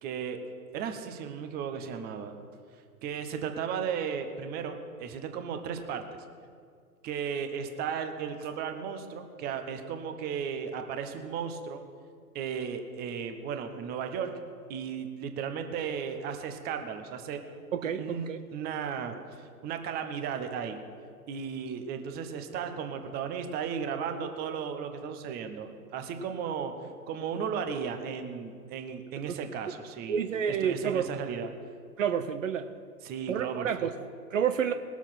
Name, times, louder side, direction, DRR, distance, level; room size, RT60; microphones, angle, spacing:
voice 1, 0.0-0.4 0.7-2.3 3.0-6.0 7.0-11.8 12.3-14.3 14.7-17.4 18.0-20.8 21.3-26.7 27.1-30.2 30.5-31.5 33.0-33.9, right 7 dB, 20° right, 7 dB, 0.9 m, -35 dB
voice 2, 17.7-18.4 29.3-29.4 30.1-31.1 32.0-32.7 33.3-34.7, right 8 dB, 55° right, 9 dB, 0.7 m, -29 dB
20.0 x 7.2 x 5.8 m, 2.2 s
figure-of-eight pair, 115°, 47 cm